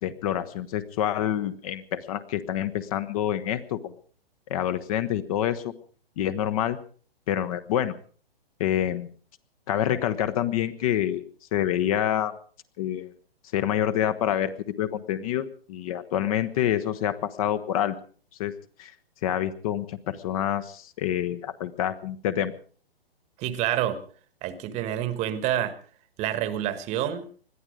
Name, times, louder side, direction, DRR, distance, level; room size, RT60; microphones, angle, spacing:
voice 1, 0.0-3.9 4.5-5.7 6.2-6.8 7.3-7.9 8.6-9.1 9.7-11.2 11.5-12.3 12.8-13.1 13.5-14.5 14.8-18.0 18.4-18.9 19.2-22.5, left 11 dB, 35° left, 11 dB, 1.1 m, -27 dB
voice 2, 23.4-24.0 24.4-25.7 26.2-27.3, right 11 dB, 20° right, 13 dB, 1.3 m, -27 dB
21.0 x 13.5 x 5.0 m, 0.44 s
figure-of-eight pair, 130°, 30 cm